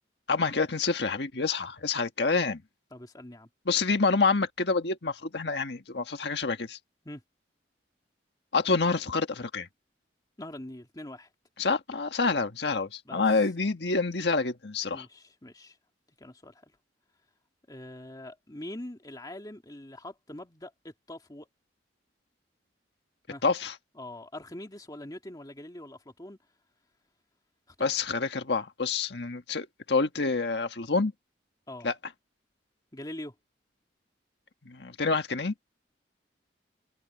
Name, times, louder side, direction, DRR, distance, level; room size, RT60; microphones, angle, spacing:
voice 1, 0.3-2.6 3.7-6.8 8.5-9.7 11.6-15.1 23.4-23.7 27.8-31.1 31.8-31.9 34.6-35.5, left 4 dB, 65° left, 1.5 m, -27 dB
voice 2, 2.9-3.5 7.0-7.2 10.4-11.3 13.1-13.2 14.9-15.8 16.2-16.7 17.7-21.5 23.3-23.4 24.0-26.4 27.7-27.9 31.7-31.9 32.9-33.3, left 1 dB, 20° left, 2.2 m, -43 dB
head